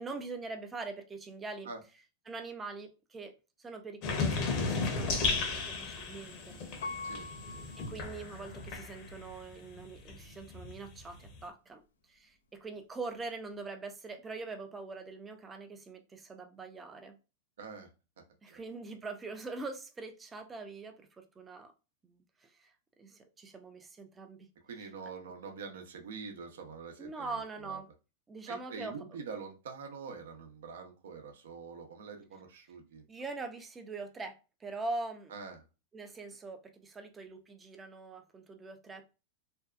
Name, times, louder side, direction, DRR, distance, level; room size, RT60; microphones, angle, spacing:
voice 1, 0.0-1.7 2.3-3.3 3.6-6.5 7.8-11.8 12.1-17.2 18.4-21.7 22.0-22.7 23.0-24.5 25.1-25.2 27.0-27.9 28.3-29.2 33.1-35.3 35.9-39.0, right 3 dB, 15° right, 0.5 m, -43 dB
sound 1, 4.0-9.4 9.7-11.4, left 4 dB, 50° left, 0.8 m, -35 dB
Piano, 6.8-8.8 9.4-9.5, left 3 dB, 85° left, 0.4 m, -43 dB
voice 2, 17.6-17.9 18.5-18.6 24.6-27.8 28.5-33.0 35.3-35.6, right 5 dB, 80° right, 0.7 m, -45 dB
2.6 x 2.3 x 2.3 m
hypercardioid pair, 115°, 0 cm